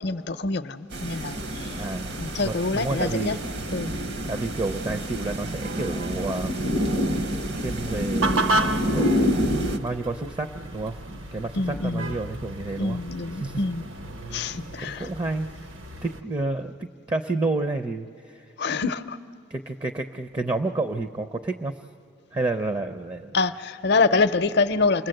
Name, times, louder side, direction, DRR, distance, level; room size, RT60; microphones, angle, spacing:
voice 1, 0.0-1.7 2.2-3.3 3.7-4.0 11.6-12.1 12.8-13.8 14.3-15.1 18.6-19.2 23.3-25.1, left 3 dB, 55° left, 12 dB, 0.6 m, -25 dB
sound 1, 0.9-9.8, equal, 55° right, 0.9 m, -28 dB
sound 2, 1.3-16.2, right 2 dB, 75° right, 1.1 m, -35 dB
voice 2, 1.7-3.4 4.3-6.8 7.5-9.1 9.8-13.0 13.4-13.6 14.8-15.7 16.0-18.8 19.5-21.8 22.3-23.3, right 2 dB, 20° right, 8 dB, 0.5 m, -30 dB
28.5 x 20.0 x 7.8 m, 2.5 s
head